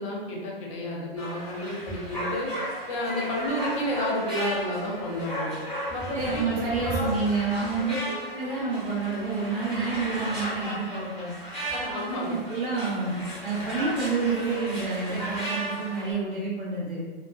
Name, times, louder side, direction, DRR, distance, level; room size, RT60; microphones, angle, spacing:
voice 1, 0.0-2.5 2.9-5.6 5.9-6.4 6.9-7.1 7.8-8.2 11.7-12.4, left 1 dB, 35° left, -3 dB, 0.6 m, -31 dB
sound 1, 1.2-16.1, equal, 5° left, 1.3 m, -35 dB
voice 2, 6.1-7.9 8.3-11.3 12.3-13.1 13.4-17.0, right 4 dB, 60° right, -7 dB, 0.7 m, -28 dB
2.2 x 2.2 x 2.5 m, 1.4 s
figure-of-eight pair, 125°, 31 cm